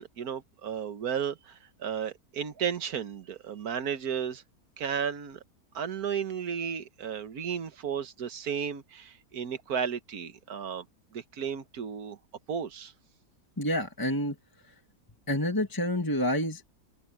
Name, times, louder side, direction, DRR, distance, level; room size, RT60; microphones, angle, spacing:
voice 1, 0.0-4.4 4.8-5.4 5.7-10.8 11.1-12.2 12.5-12.9, right 7 dB, 70° right, 1.6 m, -34 dB
voice 2, 13.6-14.4 14.6-14.7 15.3-16.7, left 1 dB, 15° left, 2.0 m, -28 dB
open air
omnidirectional pair, 1.7 m